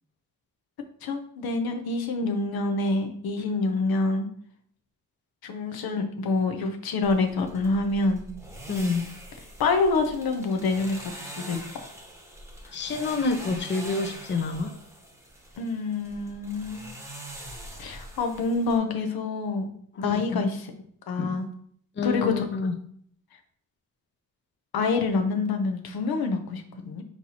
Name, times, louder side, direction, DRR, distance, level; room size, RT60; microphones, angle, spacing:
voice 1, 1.0-4.3 5.4-8.2 9.6-11.8 15.6-16.9 17.8-19.7 20.0-20.7 21.1-21.5 22.0-22.4 24.7-27.0, left 3 dB, 80° left, 5 dB, 0.8 m, -27 dB
sound 1, 7.0-18.8, right 1 dB, 10° right, 0.9 m, -43 dB
voice 2, 8.7-9.1 12.7-14.7 20.0-20.4 21.2-21.4 22.0-22.7, left 3 dB, 30° left, 6 dB, 0.6 m, -28 dB
4.5 x 4.0 x 2.8 m, 0.63 s
cardioid pair, 85°, 36 cm